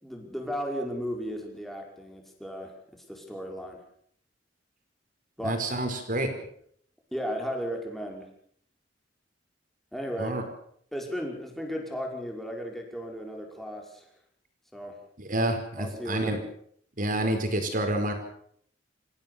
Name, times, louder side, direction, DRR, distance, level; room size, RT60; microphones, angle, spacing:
voice 1, 0.0-3.8 5.4-5.6 7.1-8.3 9.9-10.4 10.9-14.1 14.7-15.0 15.4-16.4, equal, ahead, 1 dB, 5.4 m, -35 dB
voice 2, 5.4-6.3 10.2-10.4 15.2-16.4 17.0-18.1, right 1 dB, 50° right, 6 dB, 5.0 m, -28 dB
28.0 x 16.0 x 7.0 m, 0.65 s
head